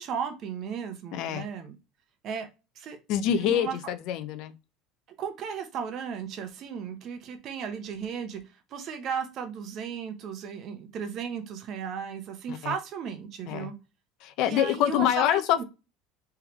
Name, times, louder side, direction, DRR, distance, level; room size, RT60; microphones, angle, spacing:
voice 1, 0.0-1.7 2.2-2.5 2.7-3.0 3.3-3.7 5.2-8.4 8.7-13.7 14.4-15.6, right 7 dB, 50° right, 1.0 m, -35 dB
voice 2, 1.1-1.5 3.1-4.5 12.5-12.7 13.5-13.7 14.2-15.6, left 10 dB, 60° left, 0.6 m, -26 dB
3.6 x 3.4 x 3.0 m
supercardioid pair, 115°, 0 cm